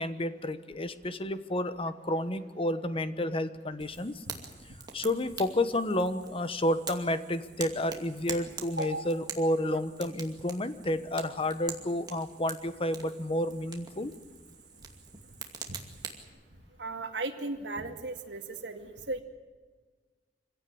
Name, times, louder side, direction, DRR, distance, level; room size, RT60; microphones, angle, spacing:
voice 1, 0.0-4.2 4.9-14.1, left 1 dB, 30° left, 12 dB, 1.1 m, -31 dB
Fire, 3.8-16.2, right 5 dB, 25° right, 2.4 m, -45 dB
voice 2, 8.8-9.1 16.8-19.2, right 2 dB, 75° right, 4 dB, 2.2 m, -36 dB
25.0 x 16.5 x 8.7 m, 1.4 s
head